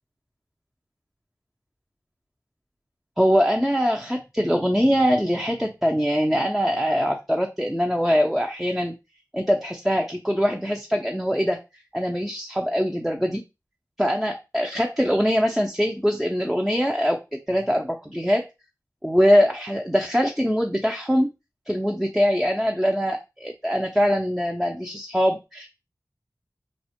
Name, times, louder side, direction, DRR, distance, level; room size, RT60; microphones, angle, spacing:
voice 1, 3.2-8.9 9.3-11.6 11.9-13.4 14.0-18.5 19.0-21.3 21.7-25.7, equal, ahead, 3 dB, 0.4 m, -22 dB
2.4 x 2.0 x 2.8 m, 0.26 s
cardioid pair, 40°, 7 cm